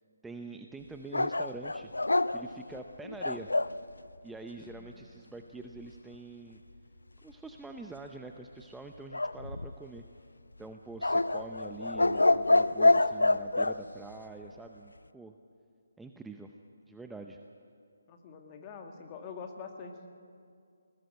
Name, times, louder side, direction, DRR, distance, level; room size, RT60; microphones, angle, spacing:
voice 1, 0.2-1.9 2.3-3.5 4.2-6.6 7.2-10.1 10.6-15.3 16.0-16.5 16.9-17.4, right 3 dB, 5° right, 4 dB, 0.7 m, -45 dB
sound 1, 1.1-3.8 9.1-10.0 11.0-13.8, left 2 dB, 85° left, 0.6 m, -26 dB
voice 2, 4.6-5.1 18.1-20.1, left 5 dB, 25° left, 4 dB, 2.0 m, -45 dB
20.5 x 19.5 x 7.8 m, 2.4 s
figure-of-eight pair, 150°, 0 cm